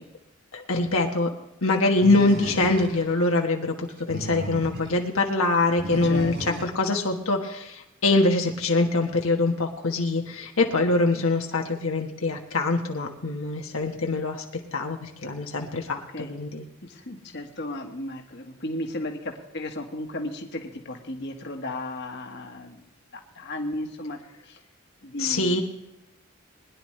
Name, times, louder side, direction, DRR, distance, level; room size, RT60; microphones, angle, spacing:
voice 1, 0.5-1.3 1.6-6.3 6.6-14.4 14.7-16.6 25.2-25.6, left 2 dB, 80° left, 2 dB, 1.4 m, -24 dB
Animal, 2.0-3.2 3.9-5.0 5.8-6.8, right 1 dB, 55° right, 3.1 m, -35 dB
voice 2, 6.0-6.6 16.1-16.3 16.8-22.8 23.1-24.2 24.4-24.6 25.0-25.6, left 1 dB, 55° left, 3 dB, 1.5 m, -35 dB
21.5 x 11.0 x 3.3 m, 0.92 s
head